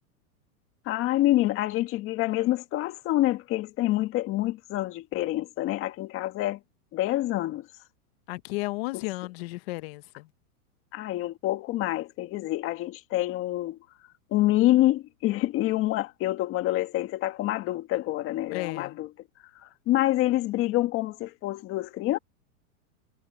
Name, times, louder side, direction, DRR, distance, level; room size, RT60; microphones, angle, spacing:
voice 1, 0.9-6.6 6.9-7.7 10.9-13.8 14.3-19.1 19.6-22.2, left 16 dB, 30° left, 1.8 m, -27 dB
voice 2, 8.3-10.3 18.5-19.0, left 23 dB, 45° left, 1.0 m, -34 dB
supercardioid pair, 155°, 43 cm